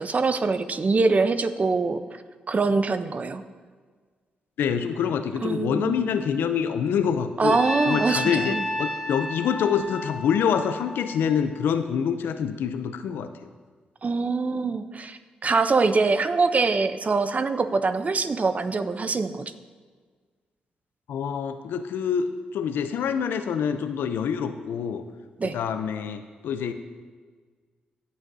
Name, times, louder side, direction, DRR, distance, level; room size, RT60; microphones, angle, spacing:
voice 1, 0.0-2.0 2.5-3.4 5.4-6.1 7.4-8.7 14.0-19.5 25.4-25.6, right 4 dB, 45° right, 10 dB, 0.6 m, -24 dB
voice 2, 4.6-7.6 7.9-13.3 21.1-25.0 25.4-26.7, left 7 dB, 80° left, 10 dB, 0.5 m, -26 dB
Trumpet, 7.4-11.7, left 1 dB, 10° left, 2.8 m, -31 dB
15.0 x 6.3 x 2.7 m, 1.5 s
supercardioid pair, 45°, 4 cm